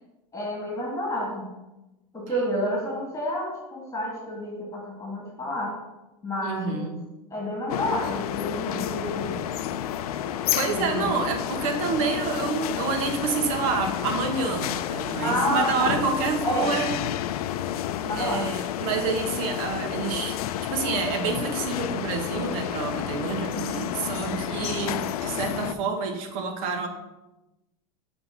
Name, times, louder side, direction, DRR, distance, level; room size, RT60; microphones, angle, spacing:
voice 1, 0.3-1.5 2.1-5.8 6.2-6.9 7.3-9.4 10.7-11.1 15.1-16.0 16.4-16.7 17.9-18.5, equal, 15° left, -2 dB, 1.7 m, -29 dB
voice 2, 6.4-7.0 10.5-17.0 18.1-26.9, right 5 dB, 70° right, 5 dB, 1.3 m, -28 dB
sound 1, 7.7-25.7, left 11 dB, 85° left, 0.4 m, -30 dB
6.9 x 3.4 x 5.6 m, 0.99 s
hypercardioid pair, 105°, 19 cm